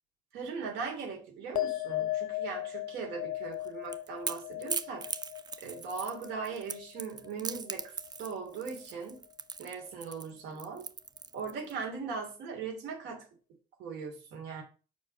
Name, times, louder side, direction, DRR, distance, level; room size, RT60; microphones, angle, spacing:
voice 1, 0.3-5.1 5.6-7.9 8.2-9.2 9.6-10.9 11.3-13.2 13.8-14.6, right 5 dB, 85° right, 2 dB, 2.9 m, -39 dB
sound 1, 1.6-8.2 8.5-9.2, left 15 dB, 55° left, 0.7 m, -38 dB
Crackle / Crack, 3.5-11.7, right 5 dB, 25° right, 0.5 m, -40 dB
5.2 x 4.9 x 6.4 m, 0.35 s
cardioid pair, 110°, 17 cm